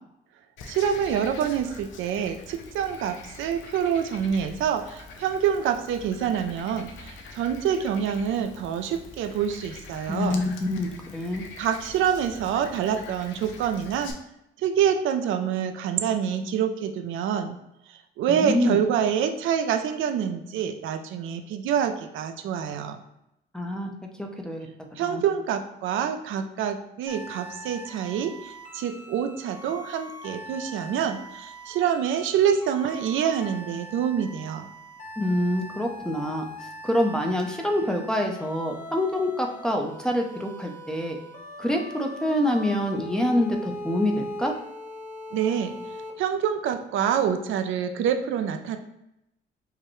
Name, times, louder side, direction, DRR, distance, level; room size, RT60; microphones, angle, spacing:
Frog, 0.6-14.1, left 4 dB, 75° left, 0.6 m, -45 dB
voice 1, 0.7-10.4 11.6-14.1 14.6-17.6 17.9-23.0 25.0-34.7 45.3-45.8 46.2-48.8, right 8 dB, 80° right, 6 dB, 0.5 m, -26 dB
voice 2, 10.1-11.4 18.3-18.8 23.5-23.9 24.2-24.7 25.0-25.2 35.2-36.4 36.8-41.2 41.6-44.5, left 1 dB, 5° left, 2 dB, 0.6 m, -26 dB
sound 1, 27.1-46.1, left 1 dB, 35° left, 0.9 m, -41 dB
4.8 x 2.2 x 3.0 m, 0.83 s
cardioid pair, 90°, 20 cm